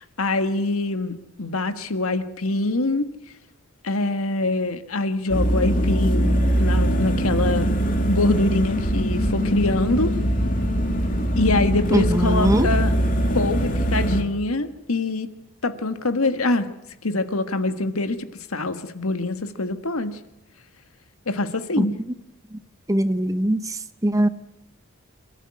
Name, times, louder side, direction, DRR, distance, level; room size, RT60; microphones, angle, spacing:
voice 1, 0.0-3.1 3.8-6.3 6.6-7.7 8.1-10.2 11.3-12.9 13.3-15.3 15.6-16.7 17.0-20.2 21.3-21.9, left 2 dB, 85° left, 1.6 m, -24 dB
sound 1, 5.3-14.2, equal, 40° left, 2.8 m, -22 dB
voice 2, 11.9-12.7 21.8-21.9 22.9-23.8 24.0-24.3, right 1 dB, 15° right, 0.8 m, -21 dB
26.5 x 14.0 x 9.7 m
head